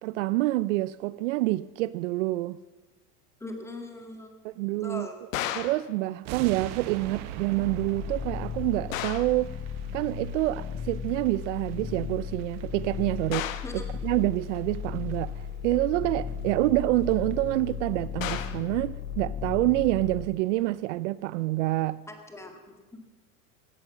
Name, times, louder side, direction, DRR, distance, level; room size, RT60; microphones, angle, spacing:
voice 1, 0.0-2.6 4.4-5.1 5.6-9.5 9.9-13.5 13.7-15.3 15.6-22.0, right 18 dB, 65° right, 0.6 m, -27 dB
voice 2, 3.4-4.4 4.8-5.2 13.6-13.8 22.1-23.0, left 2 dB, 5° left, 1.9 m, -41 dB
sound 1, 5.3-5.9 8.9-9.4 13.3-13.8 18.2-18.7, left 12 dB, 90° left, 1.2 m, -33 dB
sound 2, 6.2-15.4 15.7-15.9 16.3-16.4 16.6-16.7 17.0-17.3 17.6-17.7, right 10 dB, 45° right, 1.1 m, -44 dB
sound 3, 7.6-20.2, left 7 dB, 35° left, 1.8 m, -36 dB
16.5 x 11.0 x 7.3 m
supercardioid pair, 145°, 39 cm